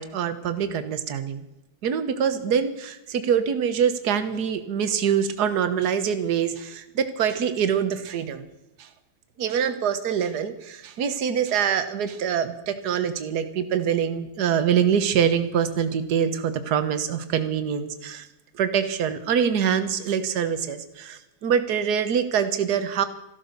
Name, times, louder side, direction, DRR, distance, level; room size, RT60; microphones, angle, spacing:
voice 1, 0.0-1.4 1.8-8.5 9.4-18.2 18.6-23.0, right 8 dB, 55° right, 10 dB, 1.7 m, -24 dB
14.5 x 13.0 x 6.7 m, 0.94 s
omnidirectional pair, 2.2 m